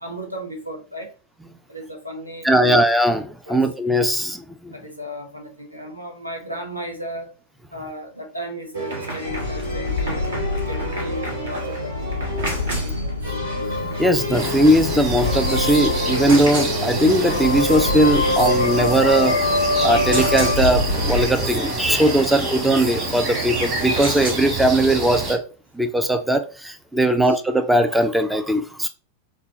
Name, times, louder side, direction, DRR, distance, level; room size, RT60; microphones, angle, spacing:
voice 1, 0.0-1.1 1.7-2.8 3.5-3.6 4.7-7.3 7.7-12.2 12.8-13.3 27.1-27.4, right 1 dB, 90° right, 0.9 m, -35 dB
voice 2, 2.4-4.7 13.8-19.5 19.8-25.4 25.7-28.9, right 1 dB, 5° right, 0.4 m, -19 dB
sound 1, 8.7-24.3, right 2 dB, 65° right, 1.3 m, -32 dB
sound 2, 9.2-21.4, left 2 dB, 75° left, 0.4 m, -24 dB
sound 3, 14.3-25.3, right 2 dB, 30° right, 1.7 m, -28 dB
3.9 x 2.2 x 3.9 m
figure-of-eight pair, 90°, 0 cm